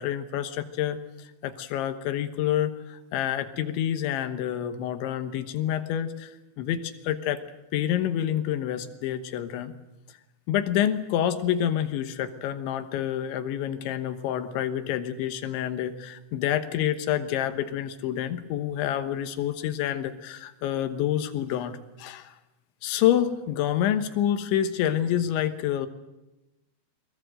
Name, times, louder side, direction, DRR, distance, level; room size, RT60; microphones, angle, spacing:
voice 1, 0.0-6.3 6.6-7.4 7.7-9.7 10.5-22.3 22.8-25.9, left 10 dB, 85° left, 9 dB, 3.5 m, -28 dB
23.0 x 21.5 x 7.9 m, 1.0 s
omnidirectional pair, 5.2 m